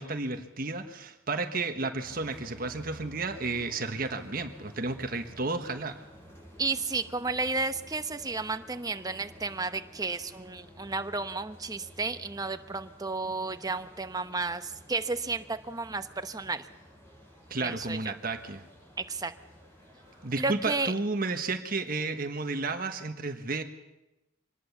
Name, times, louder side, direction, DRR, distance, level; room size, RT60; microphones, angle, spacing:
voice 1, 0.0-6.0 17.5-18.6 20.2-23.6, right 3 dB, 45° right, 7 dB, 1.4 m, -32 dB
sound 1, 2.0-20.6, equal, 15° left, 6.7 m, -52 dB
voice 2, 6.6-16.7 17.6-18.1 19.0-19.3 20.4-20.9, right 3 dB, 20° right, 9 dB, 1.0 m, -32 dB
25.5 x 20.0 x 7.3 m, 0.96 s
head